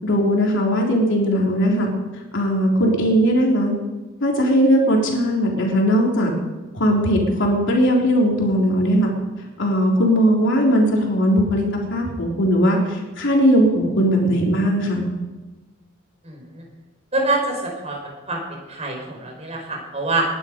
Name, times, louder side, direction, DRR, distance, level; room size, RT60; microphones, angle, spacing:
voice 1, 0.0-1.9 2.3-3.7 4.2-6.3 6.7-9.1 9.6-15.1, equal, 65° left, -1 dB, 3.7 m, -18 dB
voice 2, 16.2-16.6 17.1-20.2, right 2 dB, 35° right, 1 dB, 5.2 m, -26 dB
19.5 x 11.5 x 5.3 m, 1.2 s
head